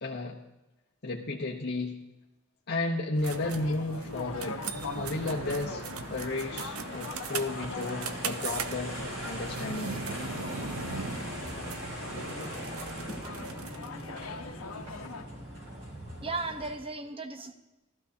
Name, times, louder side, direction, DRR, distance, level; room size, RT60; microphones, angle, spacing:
voice 1, 0.0-0.4 1.0-2.0 2.7-9.0 9.2-9.9, left 2 dB, 50° left, -3 dB, 0.9 m, -33 dB
sound 1, 3.2-14.0, right 5 dB, 90° right, 0.6 m, -40 dB
sound 2, 3.3-15.2, left 3 dB, 80° left, 0.9 m, -42 dB
sound 3, 4.1-16.8, equal, 60° right, 3.4 m, -41 dB
voice 2, 16.2-17.5, right 3 dB, 25° right, 7 dB, 0.9 m, -36 dB
15.0 x 13.0 x 2.8 m, 1.0 s
head